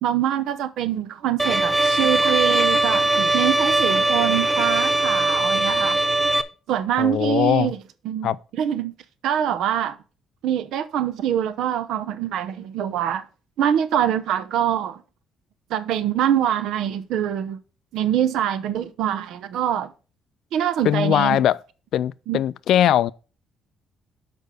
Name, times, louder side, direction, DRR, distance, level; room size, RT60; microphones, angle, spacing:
voice 1, 0.0-6.0 6.7-7.8 8.0-8.9 9.2-10.0 10.4-13.2 13.6-15.0 15.7-17.6 17.9-19.9 20.5-21.4 22.3-22.4, right 10 dB, 80° right, 0.7 m, -24 dB
Bowed string instrument, 1.4-6.4, right 1 dB, 5° right, 0.5 m, -20 dB
voice 2, 7.0-7.7 8.2-8.4 20.8-21.6 21.9-23.1, left 11 dB, 65° left, 0.3 m, -20 dB
6.7 x 5.3 x 5.1 m
cardioid pair, 145°, 0 cm